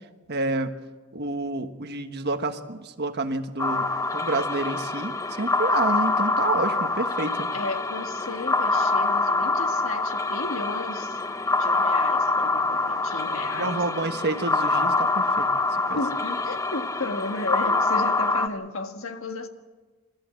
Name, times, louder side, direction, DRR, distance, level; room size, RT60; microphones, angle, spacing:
voice 1, 0.3-0.7 1.1-3.9 4.1-7.5 13.5-15.5 15.9-16.0, right 2 dB, 50° right, 7 dB, 1.3 m, -29 dB
sound 1, 3.6-18.5, left 3 dB, 15° left, 0.6 m, -25 dB
voice 2, 7.5-11.2 11.6-13.8 15.9-19.5, left 2 dB, 60° left, 6 dB, 1.7 m, -34 dB
30.0 x 14.0 x 7.7 m, 1.3 s
head